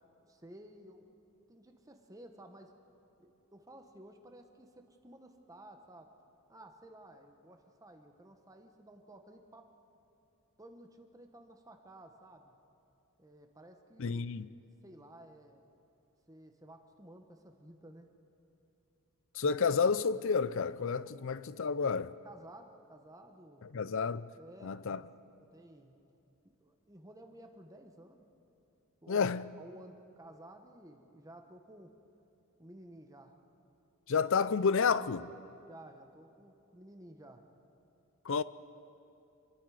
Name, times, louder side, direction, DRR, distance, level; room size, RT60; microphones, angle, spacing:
voice 1, 0.3-1.1 1.5-2.8 3.2-6.1 6.5-9.7 10.6-12.5 13.2-14.3 14.8-15.6 16.3-18.1 22.2-23.7 24.4-25.1 25.4-25.9 26.6-28.2 29.0-31.9 32.6-33.3 35.7-37.4, right 1 dB, 15° right, 1.2 m, -54 dB
voice 2, 14.0-14.5 19.3-22.1 23.6-24.3 24.6-25.0 29.1-29.5 34.1-35.3 38.2-38.4, left 5 dB, 60° left, 0.5 m, -30 dB
28.0 x 22.5 x 5.0 m
head